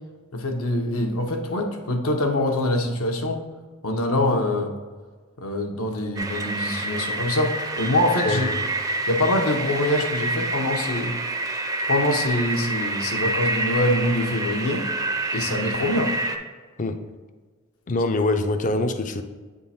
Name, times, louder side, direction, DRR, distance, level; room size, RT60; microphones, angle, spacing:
voice 1, 0.3-3.4 3.8-4.7 5.4-8.5 9.1-11.1 11.9-14.8 15.3-16.1, left 1 dB, 75° left, 3 dB, 0.9 m, -24 dB
sound 1, 6.2-16.4, right 2 dB, 15° right, 0.5 m, -28 dB
voice 2, 17.9-19.2, left 2 dB, 35° left, 8 dB, 0.5 m, -24 dB
8.3 x 3.7 x 4.3 m, 1.4 s
head